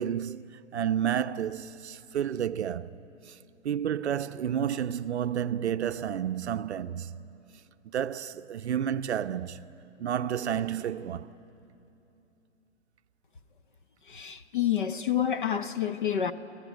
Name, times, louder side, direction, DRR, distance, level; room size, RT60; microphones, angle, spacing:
voice 1, 0.0-3.0 3.3-3.4 3.6-7.1 7.9-9.7 10.0-11.4, right 9 dB, 65° right, 0.6 m, -31 dB
voice 2, 14.1-16.3, left 9 dB, 45° left, 0.8 m, -28 dB
29.5 x 14.5 x 9.1 m
hypercardioid pair, 175°, 36 cm